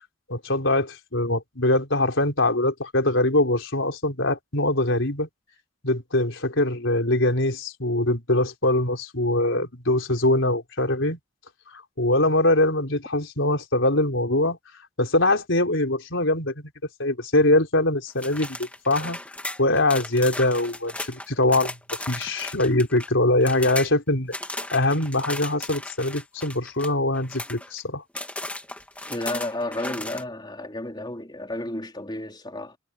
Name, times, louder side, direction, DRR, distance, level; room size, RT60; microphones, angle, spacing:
voice 1, 0.3-5.3 5.8-11.2 11.7-14.6 15.0-16.5 17.0-19.2 19.6-21.7 22.1-24.3 24.7-28.0, left 1 dB, 70° left, 4.3 m, -23 dB
sound 1, 18.2-23.1 23.4-23.9 24.3-27.8 28.2-30.2, left 2 dB, 5° left, 2.8 m, -36 dB
voice 2, 29.1-32.8, left 1 dB, 20° left, 3.9 m, -32 dB
head